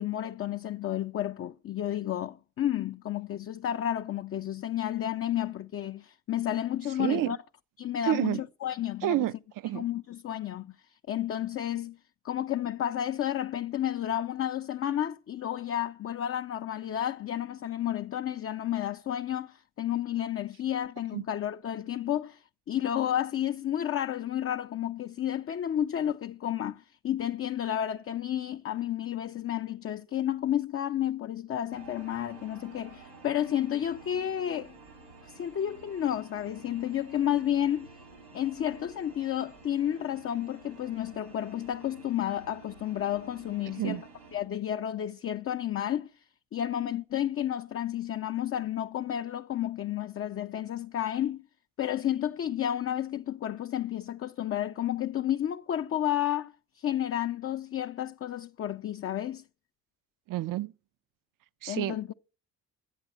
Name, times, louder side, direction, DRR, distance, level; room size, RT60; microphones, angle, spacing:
voice 1, 0.0-7.4 7.8-9.3 9.7-12.0 12.2-34.7 35.2-37.9 38.3-44.0 44.3-46.2 46.5-51.4 51.8-59.4 61.7-62.1, left 11 dB, 35° left, 0.4 m, -31 dB
voice 2, 7.0-7.3 8.0-8.4 9.0-9.3 9.6-9.9 21.1-21.2 43.7-44.0 60.3-60.7 61.6-62.1, right 14 dB, 50° right, 0.5 m, -29 dB
sound 1, 31.7-44.5, right 3 dB, 90° right, 3.7 m, -51 dB
11.5 x 8.0 x 6.1 m
supercardioid pair, 60°, 43 cm